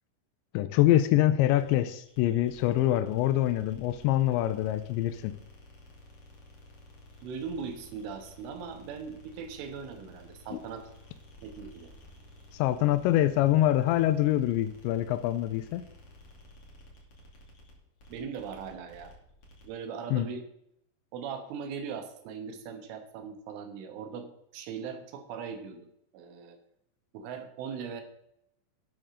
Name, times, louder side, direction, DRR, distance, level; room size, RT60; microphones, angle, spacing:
voice 1, 0.5-5.3 10.5-10.6 12.5-15.8 20.1-20.3, left 13 dB, 80° left, 10 dB, 2.7 m, -25 dB
sound 1, 1.6-19.8, left 1 dB, 35° left, 2.8 m, -53 dB
voice 2, 7.2-10.9 11.4-11.9 18.1-19.1 19.6-20.5 21.1-25.9 26.1-26.6 27.1-28.0, right 6 dB, 85° right, 6 dB, 3.8 m, -39 dB
12.0 x 9.9 x 3.8 m, 0.75 s
omnidirectional pair, 5.5 m